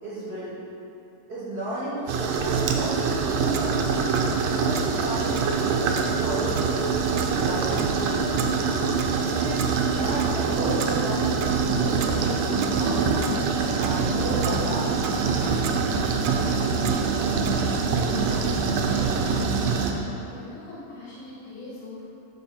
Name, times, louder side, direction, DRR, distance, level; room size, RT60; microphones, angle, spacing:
voice 1, 0.0-0.5 1.3-3.7 4.5-8.5 9.2-13.3 13.7-15.5, right 1 dB, 40° right, -9 dB, 1.5 m, -33 dB
sound 1, 2.1-19.9, right 5 dB, 75° right, 1.7 m, -24 dB
Clock, 3.2-17.5, right 6 dB, 90° right, 2.1 m, -39 dB
sound 2, 11.9-19.7, left 1 dB, 35° left, 2.4 m, -46 dB
voice 2, 19.7-22.1, left 2 dB, 85° left, -9 dB, 3.4 m, -42 dB
12.5 x 4.6 x 4.3 m, 2.9 s
omnidirectional pair, 3.5 m